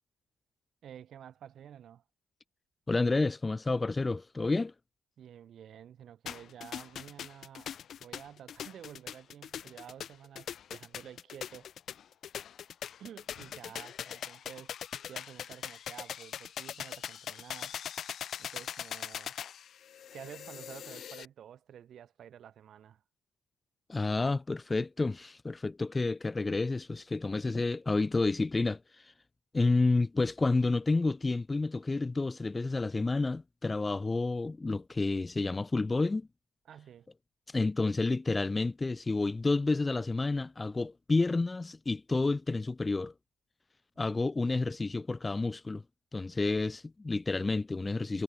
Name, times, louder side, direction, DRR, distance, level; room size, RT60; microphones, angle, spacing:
voice 1, 0.8-2.0 5.2-7.7 8.0-11.7 13.0-14.7 15.1-17.8 18.4-19.4 20.1-23.0 36.7-37.1, right 9 dB, 60° right, 6.7 m, -50 dB
voice 2, 2.9-4.7 23.9-28.8 29.5-36.3 37.5-43.1 44.0-45.8 46.1-48.2, left 3 dB, 20° left, 1.2 m, -30 dB
sound 1, 6.3-21.3, left 9 dB, 55° left, 1.5 m, -41 dB
cardioid pair, 95°, 0 cm